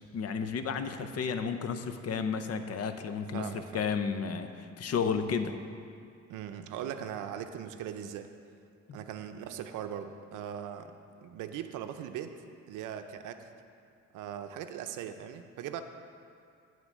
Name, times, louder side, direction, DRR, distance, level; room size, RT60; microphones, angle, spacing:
voice 1, 0.1-3.5 3.7-5.5 8.9-9.0, left 6 dB, 55° left, 9 dB, 0.7 m, -32 dB
voice 2, 3.3-3.8 6.3-8.3 8.9-12.4 12.7-13.5 14.1-15.8, right 9 dB, 90° right, 8 dB, 0.5 m, -40 dB
11.0 x 3.8 x 7.3 m, 2.4 s
cardioid pair, 90°, 30 cm